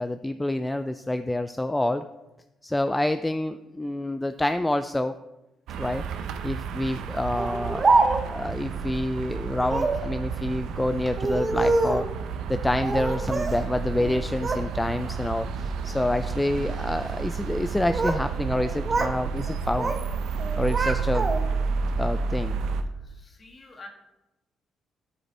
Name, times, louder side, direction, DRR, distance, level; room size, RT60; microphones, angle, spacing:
voice 1, 0.0-2.0 2.6-5.1 5.8-6.0 6.4-7.9 8.2-12.1 12.5-19.9 20.6-21.3 22.0-22.6, left 1 dB, 10° left, 9 dB, 0.3 m, -27 dB
sound 1, 5.7-22.8, right 5 dB, 85° right, 0.6 m, -31 dB
Speech, 7.4-8.5 9.6-10.1 11.1-12.1 12.8-13.6 13.9-14.7 15.0-15.4 16.1-16.4 17.5-18.3 18.5-19.2 19.5-20.1 20.4-21.6, right 3 dB, 35° right, 0.8 m, -26 dB
voice 2, 23.0-23.9, left 2 dB, 35° left, 3 dB, 1.7 m, -47 dB
12.5 x 5.3 x 3.3 m, 0.98 s
cardioid pair, 90°, 0 cm